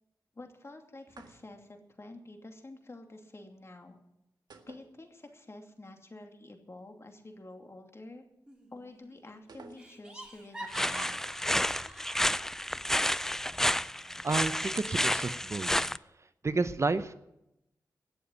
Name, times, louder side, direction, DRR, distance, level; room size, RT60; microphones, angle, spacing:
voice 1, 0.3-4.0 4.7-8.2 8.7-11.2, left 2 dB, 40° left, 4 dB, 2.6 m, -49 dB
sound 1, 1.1-1.8 4.5-5.6 5.8-5.9 9.5-10.3, right 4 dB, 75° right, 1.7 m, -54 dB
Laughter, 8.5-9.0 9.3-9.4 9.8-12.2, right 1 dB, 10° right, 3.4 m, -45 dB
sound 2, 10.7-16.0, left 1 dB, 5° left, 0.4 m, -30 dB
voice 2, 14.2-15.7 16.4-17.1, right 3 dB, 40° right, 12 dB, 0.8 m, -30 dB
18.0 x 7.1 x 9.2 m, 0.86 s
cardioid pair, 65°, 7 cm